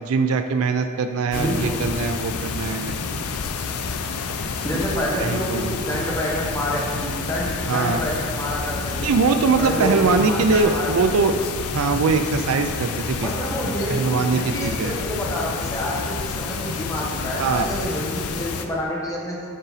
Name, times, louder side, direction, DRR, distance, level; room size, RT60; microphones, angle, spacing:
voice 1, 0.0-3.0 5.2-5.8 7.7-8.0 9.0-11.3 11.7-13.3 13.9-15.0 17.4-17.7, right 4 dB, 70° right, 7 dB, 0.4 m, -22 dB
sound 1, 1.3-18.7, left 4 dB, 80° left, 0.5 m, -29 dB
voice 2, 1.3-1.8 4.6-9.1 9.6-11.2 13.2-19.4, equal, 15° left, -4 dB, 1.3 m, -28 dB
10.0 x 4.0 x 4.0 m, 2.2 s
head